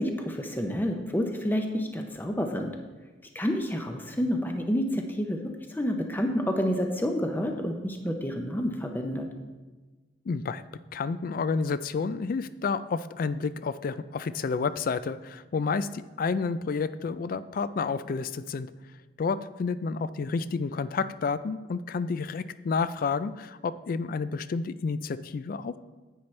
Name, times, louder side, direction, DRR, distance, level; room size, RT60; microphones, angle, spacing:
voice 1, 0.0-2.7 3.3-9.3, equal, 10° left, 4 dB, 0.6 m, -29 dB
voice 2, 10.3-10.6 10.9-18.7 19.2-25.8, left 4 dB, 50° left, 15 dB, 0.3 m, -30 dB
10.0 x 8.6 x 3.2 m, 1.3 s
head